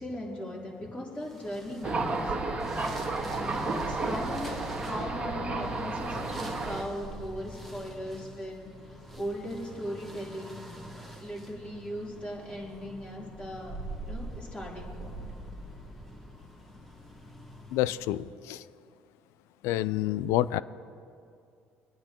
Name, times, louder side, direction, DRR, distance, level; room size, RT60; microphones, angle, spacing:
voice 1, 0.0-2.3 3.2-8.7 9.1-10.7 11.1-13.8 14.0-15.3, equal, 25° left, -5 dB, 3.4 m, -38 dB
sound 1, 1.2-18.3, right 1 dB, ahead, 1.5 m, -45 dB
Thunder, 1.8-6.8, right 3 dB, 25° right, 1.6 m, -32 dB
voice 2, 17.7-18.6 19.6-20.6, left 14 dB, 75° left, 17 dB, 0.3 m, -28 dB
21.0 x 9.4 x 3.0 m, 2.4 s
supercardioid pair, 70°, 5 cm